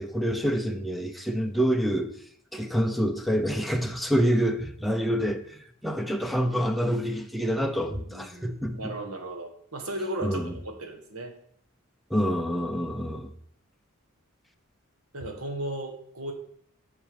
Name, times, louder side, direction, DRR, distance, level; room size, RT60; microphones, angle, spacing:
voice 1, 0.0-2.1 2.5-8.9 10.2-10.5 12.1-13.3, equal, ahead, 0.7 m, -27 dB
voice 2, 7.9-11.4 15.1-16.3, right 1 dB, 85° right, 1.6 m, -36 dB
7.8 x 6.2 x 5.2 m
head